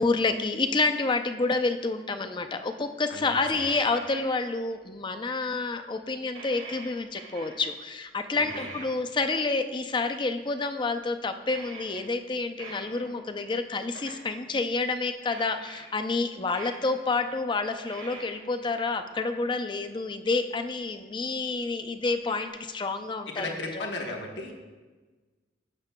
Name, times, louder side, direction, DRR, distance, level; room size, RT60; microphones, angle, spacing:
voice 1, 0.0-23.9, left 3 dB, 25° left, 8 dB, 0.4 m, -29 dB
voice 2, 3.1-3.6 8.3-8.7 23.3-24.5, left 2 dB, 75° left, 1 dB, 1.1 m, -36 dB
sound 1, 3.5-4.7 5.1-5.2 5.4-5.5 5.9-6.0 6.3-7.9 8.5-9.3 11.4-12.1 12.6-14.5 15.2-15.9 16.5-18.8 19.2-19.3 21.6-21.7 22.3-22.5, right 3 dB, 85° right, 2.3 m, -44 dB
15.0 x 6.6 x 2.2 m, 1.3 s
head